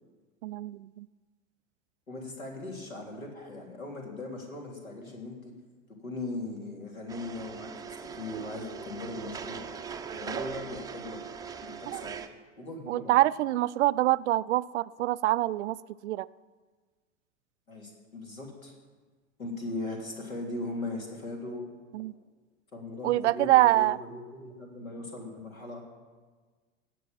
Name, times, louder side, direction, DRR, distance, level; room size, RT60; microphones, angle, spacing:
voice 1, 0.4-1.1 11.9-12.1 12.9-16.3 21.9-22.1 23.0-24.0, right 16 dB, 60° right, 17 dB, 0.5 m, -25 dB
voice 2, 2.1-5.5 6.0-9.6 10.1-11.2 11.6-12.1 12.6-13.1 17.7-18.7 19.4-21.7 22.7-25.8, left 2 dB, 80° left, 0 dB, 3.5 m, -39 dB
sound 1, 7.1-12.3, right 6 dB, 10° right, 0.6 m, -40 dB
17.5 x 6.5 x 7.6 m, 1.4 s
figure-of-eight pair, 90°, 41 cm